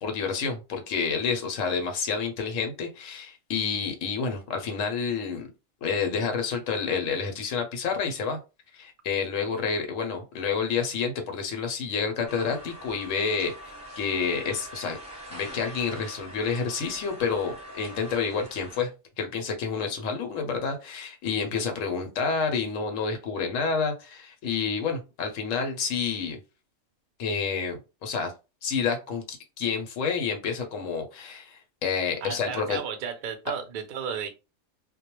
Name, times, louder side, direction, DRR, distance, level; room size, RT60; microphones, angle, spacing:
voice 1, 0.0-5.5 5.8-8.4 8.7-15.0 15.3-18.9 19.2-26.4 27.2-28.3 28.6-32.8, left 5 dB, 85° left, 4 dB, 1.0 m, -29 dB
sound 1, 12.3-18.8, equal, 5° right, 0.8 m, -43 dB
voice 2, 32.2-34.3, right 7 dB, 60° right, 6 dB, 0.5 m, -33 dB
2.2 x 2.1 x 2.9 m, 0.29 s
omnidirectional pair, 1.3 m